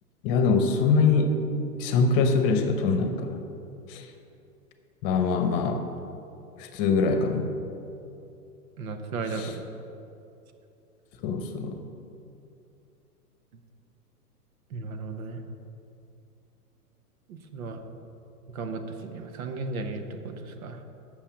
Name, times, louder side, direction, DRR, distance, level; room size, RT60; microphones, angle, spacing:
voice 1, 0.2-1.4 1.8-3.4 3.9-4.1 5.0-5.8 6.6-7.5 9.3-9.5 11.2-11.8, left 4 dB, 35° left, 7 dB, 1.0 m, -23 dB
voice 2, 8.8-9.7 14.7-15.4 17.3-17.8 18.5-20.8, right 3 dB, 60° right, 7 dB, 1.2 m, -35 dB
8.5 x 6.8 x 7.1 m, 2.7 s
hypercardioid pair, 115°, 47 cm